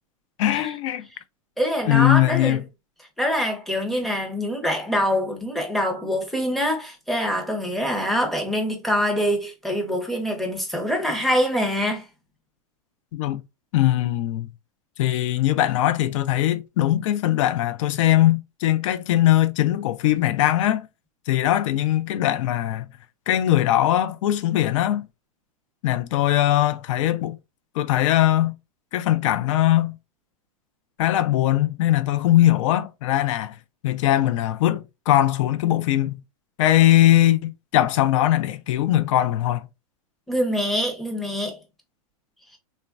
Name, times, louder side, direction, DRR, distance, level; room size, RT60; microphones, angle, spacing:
voice 1, 0.4-1.1 1.9-2.6 13.1-13.4 13.7-14.5 15.0-20.9 21.3-22.9 23.3-25.1 25.8-27.4 27.8-28.5 28.9-29.9 31.0-33.5 33.8-36.2 36.6-39.7, left 13 dB, 60° left, 0.4 m, -20 dB
voice 2, 1.6-2.6 3.2-12.1 40.3-41.6 42.5-42.6, equal, ahead, 0.6 m, -24 dB
3.1 x 2.2 x 2.3 m
hypercardioid pair, 135°, 18 cm